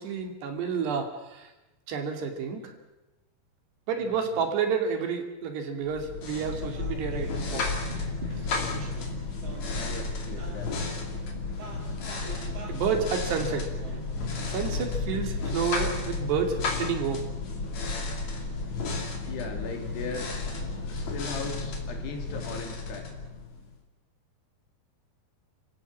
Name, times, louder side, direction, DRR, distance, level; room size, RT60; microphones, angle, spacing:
voice 1, 0.0-1.5 1.9-2.7 3.9-7.6 8.3-8.5 12.2-13.7 14.5-17.3, right 6 dB, 85° right, 5 dB, 4.7 m, -30 dB
voice 2, 3.9-4.3 7.5-7.7 9.7-11.0 19.2-20.3 20.8-23.1, left 4 dB, 80° left, 4 dB, 5.0 m, -39 dB
sound 1, 5.9-23.7, left 3 dB, 45° left, 3.9 m, -33 dB
sound 2, 6.0-15.3, right 1 dB, 40° right, 4.7 m, -45 dB
29.0 x 16.5 x 7.3 m, 1.0 s
omnidirectional pair, 4.7 m